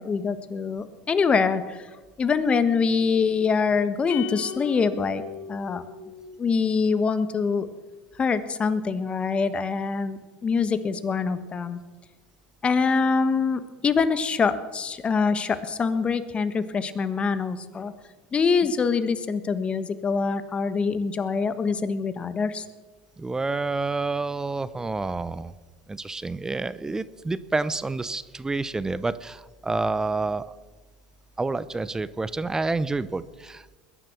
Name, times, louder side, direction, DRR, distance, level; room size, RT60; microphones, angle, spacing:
voice 1, 0.0-1.9 2.2-5.2 5.5-5.8 6.4-7.7 8.2-11.8 12.6-17.9 18.3-22.6, left 5 dB, 25° left, 12 dB, 1.4 m, -24 dB
sound 1, 4.1-6.6, left 7 dB, 50° left, 1.5 m, -37 dB
voice 2, 23.2-25.5 25.9-30.4 31.4-33.8, right 3 dB, 15° right, 16 dB, 0.7 m, -28 dB
21.5 x 10.0 x 6.1 m, 1.3 s
hypercardioid pair, 95°, 4 cm